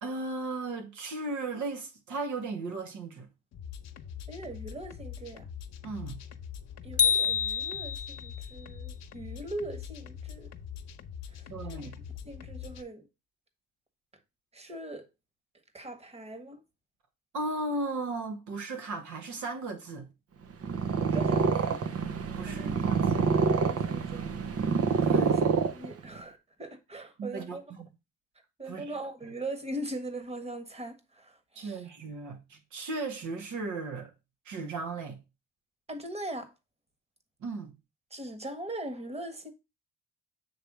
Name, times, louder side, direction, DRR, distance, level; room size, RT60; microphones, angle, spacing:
voice 1, 0.0-3.3 5.8-6.2 11.5-12.0 17.3-20.1 22.3-23.3 25.0-25.3 27.2-27.9 28.7-29.0 31.6-34.1 34.5-35.2 37.4-37.7, right 3 dB, 75° right, 2.1 m, -36 dB
sound 1, 3.5-12.8, left 8 dB, 60° left, 0.9 m, -43 dB
voice 2, 4.3-5.5 6.8-10.5 11.3-11.9 12.2-13.1 14.5-15.1 15.7-16.6 21.1-21.8 22.5-22.9 23.4-24.2 25.1-25.4 25.7-27.6 28.6-31.8 35.9-36.5 38.1-39.5, right 1 dB, 20° right, 1.6 m, -40 dB
sound 2, 7.0-8.4, left 7 dB, 25° left, 0.4 m, -27 dB
Purr, 20.5-26.2, right 5 dB, 50° right, 0.9 m, -27 dB
7.7 x 3.4 x 6.1 m
cardioid pair, 90°, 30 cm